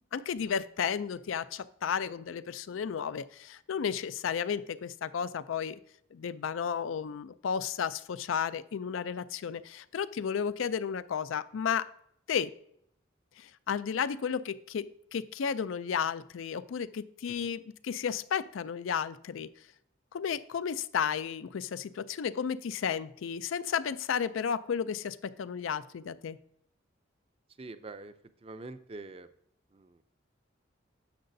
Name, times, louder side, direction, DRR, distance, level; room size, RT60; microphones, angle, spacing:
voice 1, 0.1-5.8 6.1-11.9 12.3-12.5 13.4-19.5 20.1-26.4, left 7 dB, 90° left, 16 dB, 0.4 m, -33 dB
voice 2, 27.6-28.1 28.4-29.3 29.7-30.0, right 3 dB, 30° right, 11 dB, 0.4 m, -44 dB
10.5 x 6.7 x 2.6 m, 0.71 s
head